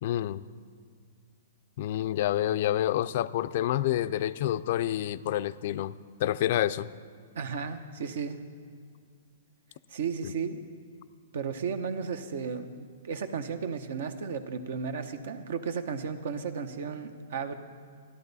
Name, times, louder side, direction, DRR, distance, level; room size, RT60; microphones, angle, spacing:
voice 1, 0.0-0.4 1.8-5.9 6.2-6.9 10.2-10.3, left 12 dB, 55° left, 16 dB, 0.4 m, -28 dB
voice 2, 7.3-8.4 9.9-10.7 11.3-17.6, right 6 dB, 70° right, 10 dB, 0.8 m, -34 dB
13.0 x 12.0 x 4.1 m, 2.1 s
hypercardioid pair, 145°, 0 cm